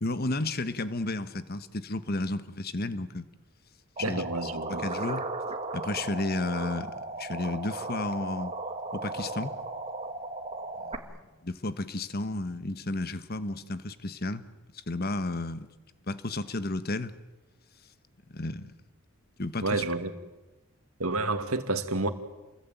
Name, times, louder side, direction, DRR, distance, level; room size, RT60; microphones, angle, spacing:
voice 1, 0.0-3.3 4.1-4.2 4.7-5.3 5.7-8.5 8.9-9.5 10.8-11.1 11.4-14.4 14.7-15.7 16.1-17.1 18.3-18.7 19.4-19.8, left 2 dB, 45° left, 1.3 m, -32 dB
sound 1, 4.0-11.0, right 2 dB, 30° right, 1.9 m, -36 dB
voice 2, 4.0-4.9 19.6-20.1 21.0-22.1, right 2 dB, 80° right, 2.4 m, -29 dB
29.0 x 22.0 x 9.2 m
head